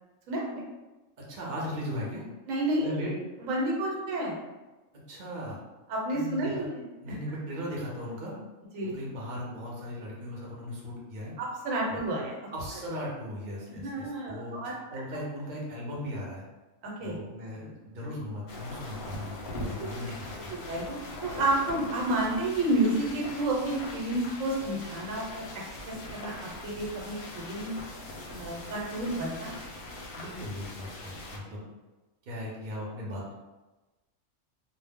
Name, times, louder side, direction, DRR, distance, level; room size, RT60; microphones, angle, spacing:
voice 1, 0.3-0.6 2.5-3.0 3.4-4.4 5.9-6.7 7.0-7.1 8.7-8.9 11.4-12.4 13.7-14.7 16.8-17.2 19.7-19.9 20.3-21.0 21.2-25.5 25.9-27.8 28.3-29.5, right 1 dB, 85° right, -3 dB, 1.1 m, -30 dB
voice 2, 1.3-2.2 2.8-3.1 5.1-5.6 6.1-6.6 7.0-8.3 8.8-11.3 11.9-12.0 12.5-16.4 17.0-20.6 30.1-31.6 32.3-33.3, equal, 45° right, -4 dB, 0.7 m, -38 dB
sound 1, 18.5-31.4, left 1 dB, 60° left, 0.7 m, -41 dB
2.3 x 2.0 x 3.4 m, 1.1 s
omnidirectional pair, 1.3 m